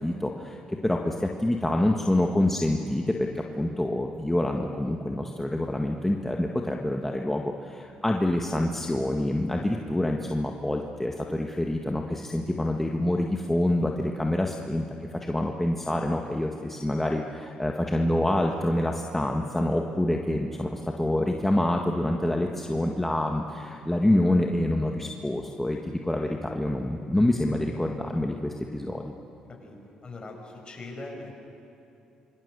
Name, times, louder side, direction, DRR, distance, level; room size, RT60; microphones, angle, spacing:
voice 1, 0.0-14.8 15.2-29.1, left 1 dB, 10° left, 2 dB, 1.8 m, -26 dB
voice 2, 26.1-26.5 29.6-31.3, left 2 dB, 35° left, 1 dB, 7.0 m, -42 dB
26.0 x 24.5 x 7.0 m, 2.8 s
supercardioid pair, 65°, 3 cm